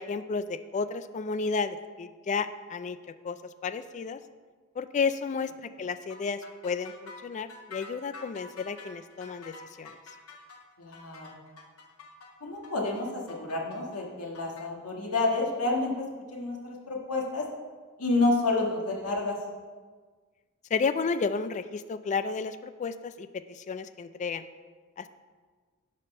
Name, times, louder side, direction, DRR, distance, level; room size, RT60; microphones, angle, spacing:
voice 1, 0.0-3.0 3.2-3.4 3.6-4.2 4.8-10.0 20.7-24.5 25.0-25.1, left 5 dB, 35° left, 12 dB, 0.3 m, -32 dB
sound 1, 6.1-14.7, left 3 dB, 70° left, 1.1 m, -48 dB
voice 2, 10.8-11.4 12.4-17.4 18.0-19.4, left 2 dB, 90° left, -1 dB, 1.6 m, -29 dB
11.0 x 4.3 x 5.3 m, 1.5 s
head